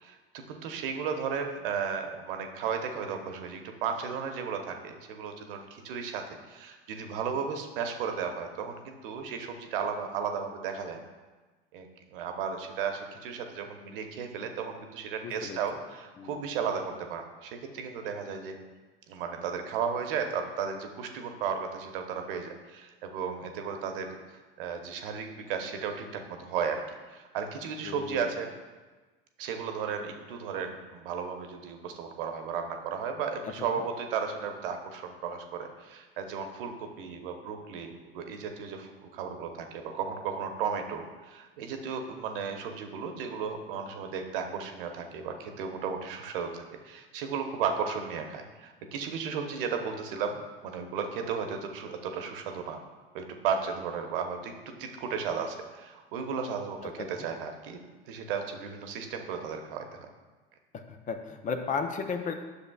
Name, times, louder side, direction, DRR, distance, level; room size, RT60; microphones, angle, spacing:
voice 1, 0.0-11.0 11.7-18.6 19.1-24.1 24.6-26.8 27.1-28.5 29.4-52.8 53.1-54.5 54.8-57.8 58.1-60.1, right 6 dB, 65° right, 5 dB, 1.0 m, -34 dB
voice 2, 15.2-15.6 16.2-16.4 27.8-28.3 57.0-57.3 60.7-62.3, left 5 dB, 25° left, 7 dB, 0.6 m, -34 dB
9.8 x 6.7 x 2.3 m, 1.3 s
hypercardioid pair, 85°, 30 cm